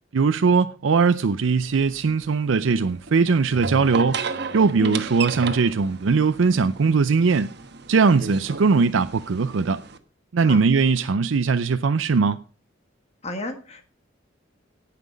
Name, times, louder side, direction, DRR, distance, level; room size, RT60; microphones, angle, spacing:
voice 1, 0.1-4.2 4.5-7.5 7.9-9.8 10.3-12.4, right 4 dB, 80° right, 0.5 m, -20 dB
sound 1, 1.4-10.0, right 5 dB, 60° right, 1.2 m, -34 dB
voice 2, 13.2-13.9, left 2 dB, 35° left, 1.5 m, -32 dB
17.5 x 5.9 x 5.1 m
head